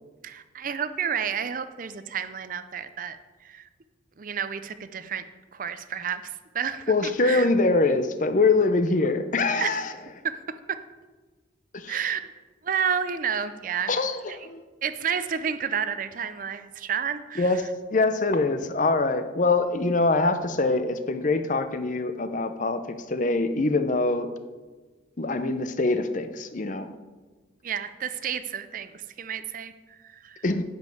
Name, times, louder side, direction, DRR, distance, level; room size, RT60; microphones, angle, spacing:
voice 1, 0.2-3.2 3.4-3.7 4.2-5.2 5.5-7.5 9.6-9.8 10.2-10.4 10.7-10.8 11.9-12.3 12.6-13.9 14.3-14.4 14.8-17.6 27.6-30.4, right 7 dB, 45° right, 12 dB, 0.5 m, -30 dB
voice 2, 6.9-9.9 11.7-12.0 13.9-14.6 17.4-17.6 17.9-24.3 25.2-26.9 30.4-30.6, left 3 dB, 40° left, 9 dB, 0.7 m, -24 dB
10.5 x 5.3 x 7.8 m, 1.3 s
head